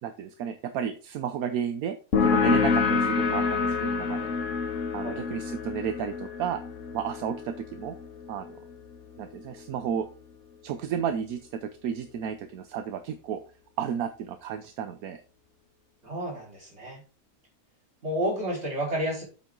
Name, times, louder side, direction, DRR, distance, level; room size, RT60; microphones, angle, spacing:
voice 1, 0.0-4.7 4.9-6.6 6.9-7.9 8.3-8.5 9.2-10.1 10.6-13.4 13.8-15.2, right 8 dB, 80° right, 9 dB, 1.2 m, -32 dB
sound 1, 2.1-9.4, left 5 dB, 60° left, 1.3 m, -28 dB
voice 2, 16.0-17.0 18.0-19.2, equal, 45° right, -2 dB, 4.6 m, -30 dB
8.2 x 6.1 x 3.8 m, 0.34 s
omnidirectional pair, 1.6 m